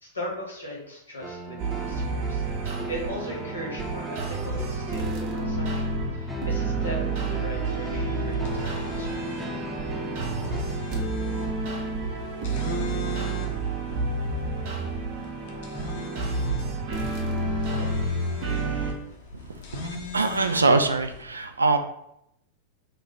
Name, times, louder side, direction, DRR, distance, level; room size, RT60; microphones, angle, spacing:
voice 1, 0.0-9.3 17.5-19.7, equal, 80° left, -2 dB, 1.3 m, -39 dB
sound 1, 1.2-10.6, left 1 dB, ahead, 0.6 m, -37 dB
sound 2, 1.6-18.9, right 3 dB, 45° right, 0.7 m, -30 dB
sound 3, 8.3-21.2, left 4 dB, 55° left, 0.7 m, -40 dB
voice 2, 19.4-21.8, right 3 dB, 75° right, 8 dB, 0.3 m, -23 dB
3.0 x 2.4 x 4.3 m, 0.79 s
figure-of-eight pair, 90°, 0 cm